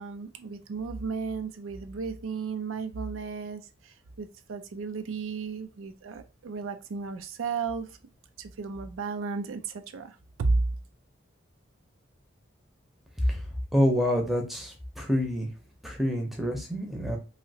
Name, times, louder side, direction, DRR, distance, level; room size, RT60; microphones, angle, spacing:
voice 1, 0.0-8.0 8.4-10.7, right 4 dB, 90° right, 9 dB, 0.4 m, -33 dB
voice 2, 13.7-15.5 15.8-17.2, equal, ahead, 2 dB, 0.6 m, -27 dB
3.1 x 2.7 x 2.7 m, 0.31 s
head